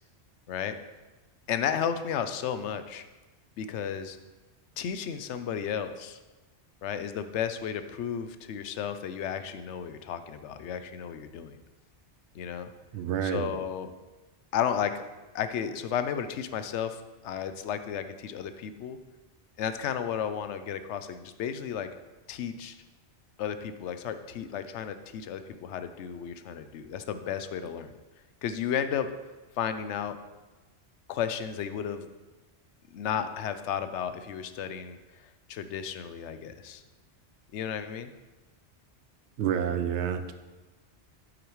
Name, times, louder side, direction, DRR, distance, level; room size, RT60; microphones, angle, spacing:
voice 1, 1.5-3.0 3.6-4.2 4.8-6.2 6.8-11.6 12.3-12.7 13.2-13.9 14.5-15.0 15.3-19.0 19.6-21.9 22.3-22.8 23.4-27.9 28.4-29.1 29.6-30.2 31.1-32.1 32.9-36.8 37.5-38.1, left 8 dB, 80° left, 10 dB, 0.9 m, -33 dB
voice 2, 12.9-13.6 39.4-40.4, right 8 dB, 80° right, 9 dB, 0.9 m, -29 dB
8.7 x 8.0 x 3.1 m, 1.2 s
omnidirectional pair, 1.2 m